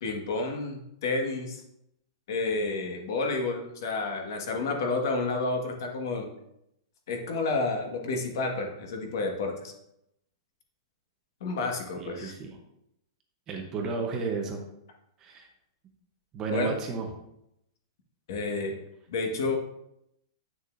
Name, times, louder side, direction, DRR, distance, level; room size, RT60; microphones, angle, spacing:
voice 1, 0.0-1.6 2.3-6.3 7.1-9.7 11.4-12.3 16.5-16.7 18.3-18.8 19.1-19.5, left 3 dB, 50° left, 2 dB, 1.5 m, -30 dB
voice 2, 12.0-12.6 13.5-14.6 15.2-15.5 16.3-17.1, right 4 dB, 20° right, 2 dB, 0.8 m, -32 dB
9.1 x 6.7 x 2.6 m, 0.80 s
supercardioid pair, 175°, 2 cm